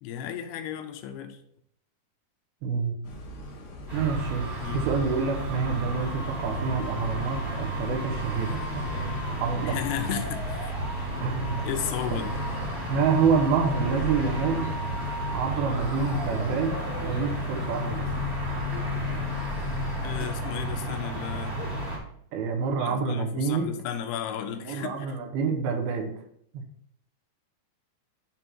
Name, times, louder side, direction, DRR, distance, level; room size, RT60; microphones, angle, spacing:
voice 1, 0.0-1.4 4.6-4.9 9.7-10.7 11.7-12.4 20.0-21.6 22.8-25.1, left 9 dB, 85° left, 6 dB, 2.7 m, -34 dB
voice 2, 2.6-3.0 3.9-9.1 9.4-9.8 11.2-11.7 12.9-14.7 15.3-16.8 17.0-18.1 22.3-23.7 24.7-26.1 26.5-26.6, right 5 dB, 75° right, 4 dB, 2.7 m, -27 dB
sound 1, 3.0-20.2, equal, 60° left, 2.5 m, -40 dB
sound 2, 3.9-22.0, equal, 25° right, 1.6 m, -32 dB
sound 3, 3.9-17.7, right 1 dB, 60° right, 2.5 m, -41 dB
8.7 x 3.5 x 4.5 m, 0.69 s
omnidirectional pair, 4.6 m